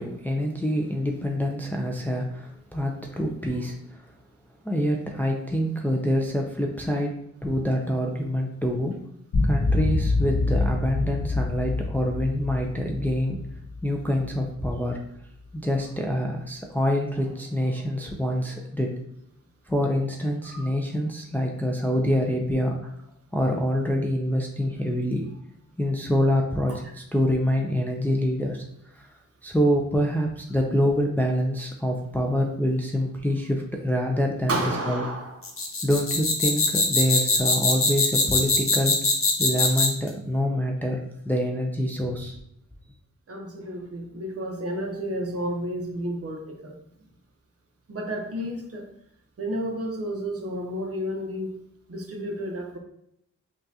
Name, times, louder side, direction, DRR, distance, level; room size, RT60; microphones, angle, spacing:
voice 1, 0.0-4.0 4.6-7.1 7.4-9.0 9.4-13.4 13.8-15.0 15.5-18.9 19.7-22.8 23.3-25.2 25.8-28.6 29.4-35.0 35.8-39.0 39.4-41.0 41.3-42.4, equal, 5° left, 1 dB, 0.4 m, -26 dB
sound 1, 9.3-14.7, left 2 dB, 75° left, 0.9 m, -26 dB
voice 2, 34.5-35.4 43.3-46.7 47.9-48.8 49.4-51.6 51.9-52.8, right 1 dB, 50° right, 1 dB, 0.9 m, -31 dB
sound 2, 35.4-40.1, left 3 dB, 45° left, 0.8 m, -22 dB
5.4 x 2.4 x 2.7 m, 0.74 s
wide cardioid pair, 125°, 31 cm